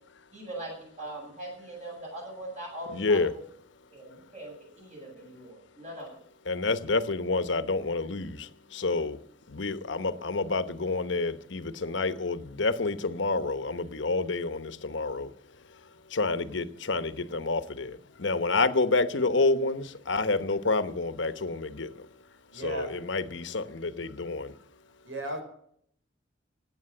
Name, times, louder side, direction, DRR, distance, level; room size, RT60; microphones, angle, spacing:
voice 1, 0.3-3.4 3.9-6.2, right 1 dB, 35° right, 7.8 m, -41 dB
voice 2, 2.9-3.3 6.5-9.2 9.5-15.3 16.1-22.1 22.5-24.5, left 3 dB, 65° left, 1.0 m, -28 dB
voice 3, 22.5-22.9 25.0-25.4, right 2 dB, 85° right, 5.1 m, -35 dB
17.5 x 9.2 x 7.8 m
head